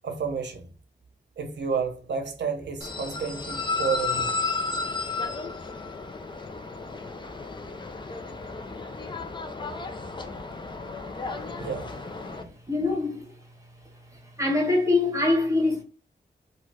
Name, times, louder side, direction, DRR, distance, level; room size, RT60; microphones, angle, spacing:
voice 1, 0.0-0.7 1.4-4.5 11.6-11.9, right 5 dB, 85° right, 0.7 m, -31 dB
sound 1, 2.8-12.4, left 3 dB, 25° left, 0.4 m, -33 dB
voice 2, 12.7-13.2 14.4-15.8, left 2 dB, 15° right, 1.1 m, -23 dB
2.9 x 2.3 x 3.3 m
wide cardioid pair, 95°, 18 cm